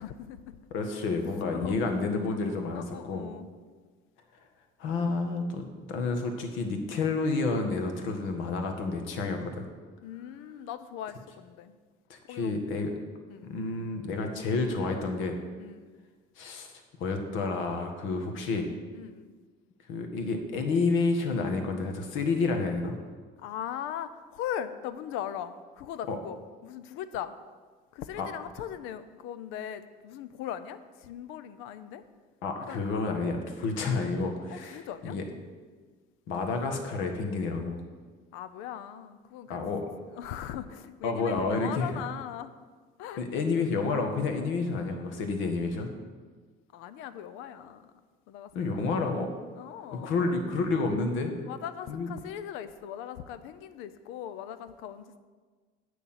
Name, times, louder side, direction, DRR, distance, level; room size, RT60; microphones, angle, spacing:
voice 1, 0.0-0.6 0.9-1.0 1.5-2.0 2.7-3.5 5.1-5.2 10.0-11.8 12.2-12.5 13.3-13.5 15.6-16.0 18.9-19.3 23.4-27.3 27.9-32.0 32.7-32.8 34.5-35.2 38.3-39.8 40.1-42.5 43.0-43.2 46.7-47.9 48.3-48.8 49.6-50.2 51.4-55.2, left 10 dB, 90° left, 13 dB, 0.7 m, -39 dB
voice 2, 0.7-3.2 4.8-9.7 12.1-12.9 13.4-15.4 16.4-16.7 17.0-18.7 19.9-23.0 26.1-26.2 28.2-28.3 32.4-35.2 36.3-37.8 39.5-39.9 41.0-42.0 43.2-45.9 48.5-49.3 49.9-51.3 51.9-52.1, left 3 dB, 75° left, 5 dB, 1.7 m, -30 dB
8.5 x 6.7 x 7.5 m, 1.5 s
cardioid pair, 145°, 20 cm